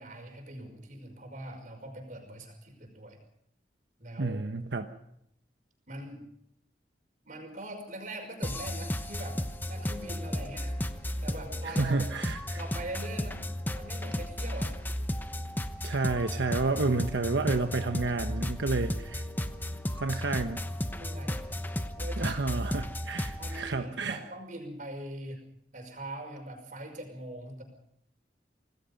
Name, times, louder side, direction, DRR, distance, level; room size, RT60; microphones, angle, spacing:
voice 1, 0.0-3.2 4.0-4.4 5.9-6.2 7.2-10.8 11.2-12.0 12.5-13.4 13.7-14.8 20.9-21.5 22.0-22.3 23.4-25.4 25.7-27.6, right 1 dB, 45° right, 4 dB, 5.6 m, -42 dB
voice 2, 4.2-4.9 11.6-12.6 15.8-19.3 19.9-20.6 22.2-24.2, right 3 dB, 90° right, 6 dB, 1.2 m, -30 dB
sound 1, 8.4-23.7, left 1 dB, 10° left, 1.0 m, -34 dB
26.5 x 19.0 x 5.4 m, 0.73 s
head